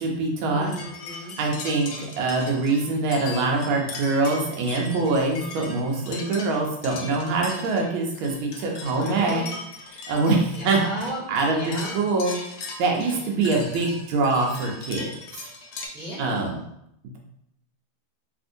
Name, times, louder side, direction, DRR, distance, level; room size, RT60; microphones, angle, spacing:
voice 1, 0.0-0.7 1.4-9.4 10.1-10.8 11.3-12.3 12.8-15.1 16.2-16.6, right 3 dB, 80° right, 0 dB, 1.5 m, -24 dB
voice 2, 0.5-1.3 8.8-9.6 9.9-10.1 10.6-11.2 11.5-12.0 13.1-13.2 15.9-16.5, equal, 35° right, -11 dB, 0.5 m, -36 dB
sound 1, 0.6-15.9, left 3 dB, 75° left, 0.9 m, -39 dB
3.4 x 2.6 x 2.5 m, 0.77 s
omnidirectional pair, 2.3 m